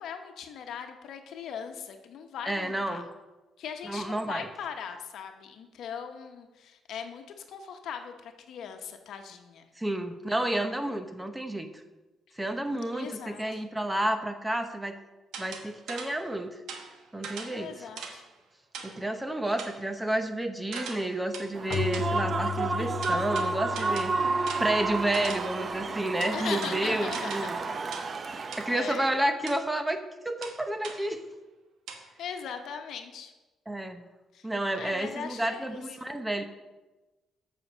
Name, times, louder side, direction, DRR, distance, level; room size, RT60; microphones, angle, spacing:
voice 1, 0.0-3.0 3.6-9.7 12.9-13.6 17.5-18.2 26.3-27.7 28.7-29.1 32.2-33.3 34.3-34.5 34.7-35.8, left 7 dB, 75° left, 6 dB, 1.0 m, -40 dB
voice 2, 2.5-3.1 3.8-4.5 9.8-11.7 12.4-15.0 15.4-16.5 17.1-17.9 18.8-24.3 24.6-27.6 28.6-31.2 33.7-34.0 34.4-36.4, right 1 dB, 10° right, 7 dB, 0.9 m, -30 dB
sound 1, 15.3-16.3 16.7-18.3 18.7-19.1 19.6-19.9 20.7-22.3 23.0-25.6 26.2-27.6 27.9-28.2 28.5-28.7 29.5-29.6 30.4-31.1 31.9-32.1, right 5 dB, 80° right, 1.2 m, -41 dB
Human voice / Cheering / Applause, 21.5-29.2, right 4 dB, 40° right, 0.6 m, -31 dB
Keyboard (musical), 21.7-26.2, left 10 dB, 60° left, 0.4 m, -37 dB
7.9 x 6.2 x 6.3 m, 1.1 s
cardioid pair, 90°, 0 cm